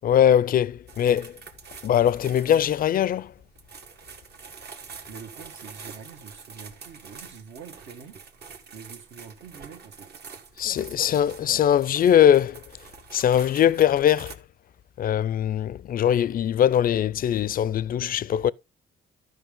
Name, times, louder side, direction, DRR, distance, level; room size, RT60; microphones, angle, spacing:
voice 1, 0.0-1.4 1.8-3.3 10.6-12.6 13.1-14.4 15.0-18.5, left 10 dB, 45° left, 0.4 m, -21 dB
sound 1, 0.9-14.4, right 5 dB, 55° right, 1.3 m, -46 dB
voice 2, 5.1-8.2 8.7-10.2, right 6 dB, 75° right, 1.7 m, -45 dB
12.5 x 5.4 x 3.7 m
cardioid pair, 90°, 20 cm